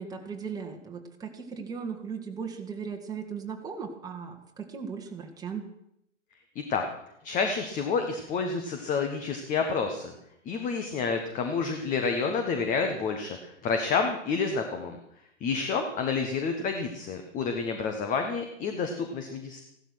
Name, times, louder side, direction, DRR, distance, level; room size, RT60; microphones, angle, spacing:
voice 1, 0.0-5.7, right 6 dB, 10° right, 2 dB, 1.9 m, -37 dB
voice 2, 7.2-10.1 10.4-15.0 15.4-19.6, left 5 dB, 20° left, 5 dB, 1.4 m, -29 dB
16.0 x 12.5 x 6.2 m, 0.77 s
figure-of-eight pair, 110°, 36 cm